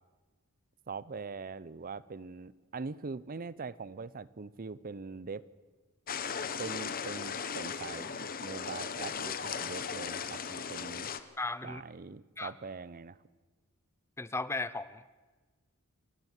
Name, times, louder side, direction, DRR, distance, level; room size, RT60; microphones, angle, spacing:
voice 1, 0.9-5.4 6.6-11.1 11.6-13.2, right 4 dB, 40° right, 19 dB, 0.6 m, -42 dB
sound 1, 6.1-11.2, left 6 dB, 40° left, 1.0 m, -37 dB
voice 2, 11.4-11.8 12.4-12.5 14.2-15.2, left 3 dB, 10° left, 16 dB, 0.5 m, -36 dB
29.5 x 12.0 x 8.2 m, 1.3 s
head